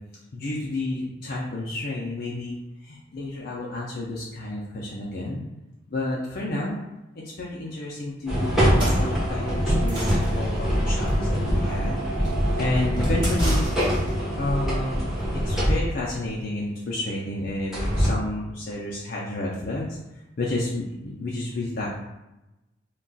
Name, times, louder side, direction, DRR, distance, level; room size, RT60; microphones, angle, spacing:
voice 1, 0.3-5.4 5.9-6.8 7.1-12.0 12.6-13.7 14.4-15.1 15.3-20.0 20.4-21.9, left 2 dB, 55° left, -4 dB, 0.4 m, -30 dB
sound 1, 8.3-16.1 17.7-18.1, equal, ahead, 0.8 m, -24 dB
sound 2, 8.6-14.2, equal, 25° right, 0.9 m, -32 dB
2.3 x 2.2 x 3.8 m, 0.95 s
head